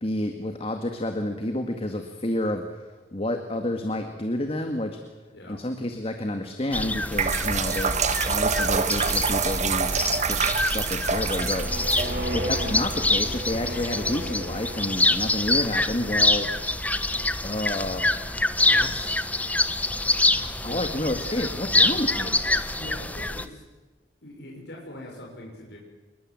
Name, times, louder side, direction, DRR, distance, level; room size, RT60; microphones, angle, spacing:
voice 1, 0.0-4.9 5.5-9.9 10.3-12.0 12.3-16.5 17.4-18.1 18.6-19.2 20.4-22.3, left 1 dB, 35° left, 6 dB, 2.0 m, -30 dB
sound 1, 6.7-23.5, left 2 dB, 10° left, 1.1 m, -26 dB
sound 2, 6.9-13.8, right 5 dB, 40° right, 1.6 m, -27 dB
sound 3, 10.9-15.5, right 1 dB, 60° right, 3.3 m, -35 dB
voice 2, 12.0-12.3 20.6-20.9 22.8-23.7 24.2-25.8, left 1 dB, 65° left, -1 dB, 6.2 m, -42 dB
27.0 x 22.5 x 7.8 m, 1.2 s
head